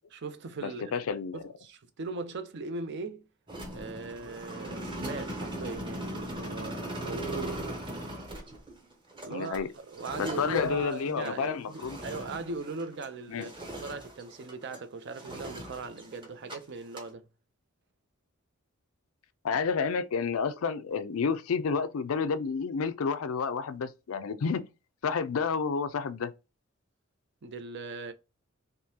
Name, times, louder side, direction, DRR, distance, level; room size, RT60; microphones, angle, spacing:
voice 1, 0.1-1.0 1.3-3.3 3.7-7.6 7.9-8.2 9.2-9.6 9.9-17.3 27.4-28.1, right 3 dB, 55° right, 0.5 m, -39 dB
voice 2, 0.6-1.4 9.3-9.7 10.2-12.0 13.3-13.5 19.4-24.7 25.0-26.3, left 5 dB, 80° left, 0.4 m, -30 dB
sound 1, 3.5-13.2 13.4-14.8 15.1-16.6 16.8-17.1, right 1 dB, 25° right, 0.9 m, -39 dB
3.7 x 2.7 x 2.7 m
head